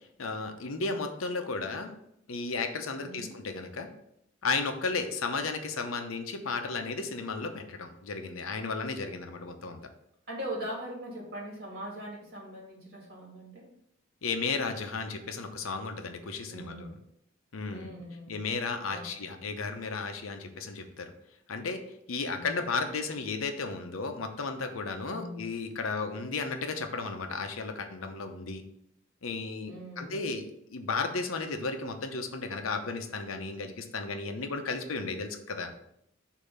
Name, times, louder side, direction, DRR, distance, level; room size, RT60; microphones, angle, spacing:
voice 1, 0.2-1.9 2.3-3.9 4.4-9.8 14.2-16.9 17.5-17.9 18.3-21.1 21.5-21.8 22.1-28.6 29.2-30.4 30.7-35.7, left 4 dB, 90° left, 6 dB, 0.8 m, -34 dB
voice 2, 3.0-3.3 10.3-13.7 16.5-17.0 17.7-18.5 18.9-19.3 22.3-22.7 25.0-25.5 29.7-30.3, equal, 50° right, -2 dB, 2.2 m, -41 dB
6.7 x 2.8 x 5.5 m, 0.76 s
head